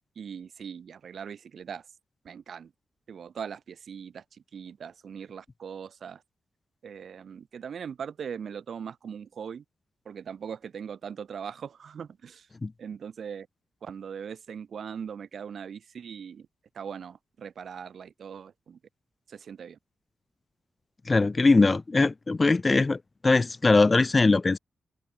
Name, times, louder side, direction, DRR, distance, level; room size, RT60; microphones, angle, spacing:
voice 1, 0.2-1.9 2.2-2.7 3.1-6.2 6.8-9.6 10.0-12.5 12.8-13.5 13.8-16.5 16.7-18.8 19.3-19.8, right 7 dB, 70° right, 7.7 m, -40 dB
voice 2, 21.1-24.6, left 3 dB, 35° left, 2.4 m, -21 dB
supercardioid pair, 40°, 0 cm